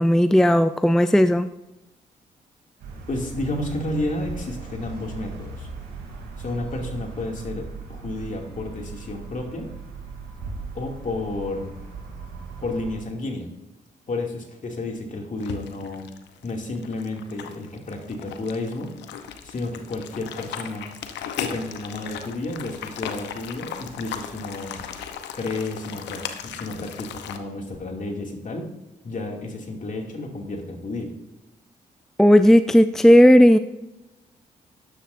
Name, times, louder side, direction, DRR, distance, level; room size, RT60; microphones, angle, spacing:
voice 1, 0.0-1.5 32.2-33.6, equal, 5° left, 11 dB, 0.4 m, -14 dB
sound 1, 2.8-13.0, right 4 dB, 75° right, 3.0 m, -38 dB
voice 2, 3.1-5.7 6.4-9.7 10.7-11.7 12.6-13.5 14.1-16.1 16.4-18.9 19.4-20.9 21.4-24.8 25.3-28.7 29.0-31.1, left 2 dB, 45° left, 1 dB, 2.5 m, -31 dB
sound 2, 15.4-27.4, left 8 dB, 75° left, 0.9 m, -36 dB
13.0 x 9.9 x 2.6 m, 0.97 s
hypercardioid pair, 50°, 18 cm